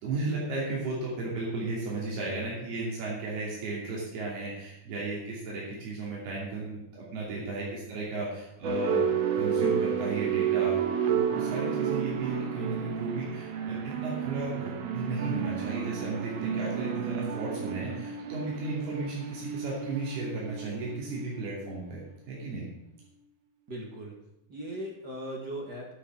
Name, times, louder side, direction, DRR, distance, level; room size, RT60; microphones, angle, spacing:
voice 1, 0.0-9.0 9.3-10.8 11.1-22.0 22.3-22.7, right 3 dB, 80° right, -5 dB, 4.8 m, -35 dB
voice 2, 7.3-7.7 23.7-24.1 24.5-25.9, right 1 dB, 40° right, -1 dB, 1.5 m, -39 dB
sound 1, 8.6-22.0, right 7 dB, 65° right, 2.4 m, -31 dB
11.5 x 6.7 x 7.6 m, 0.80 s
omnidirectional pair, 4.5 m